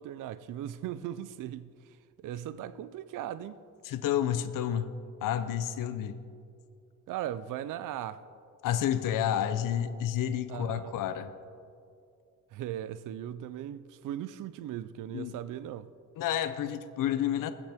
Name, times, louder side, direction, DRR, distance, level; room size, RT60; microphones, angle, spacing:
voice 1, 0.0-3.6 7.1-8.2 10.5-10.9 12.5-15.9, right 11 dB, 65° right, 0.5 m, -38 dB
voice 2, 3.8-4.9 5.2-6.2 8.6-11.3 15.1-15.3 16.2-17.5, left 10 dB, 70° left, 0.7 m, -30 dB
20.0 x 8.3 x 3.5 m
cardioid pair, 130°, 34 cm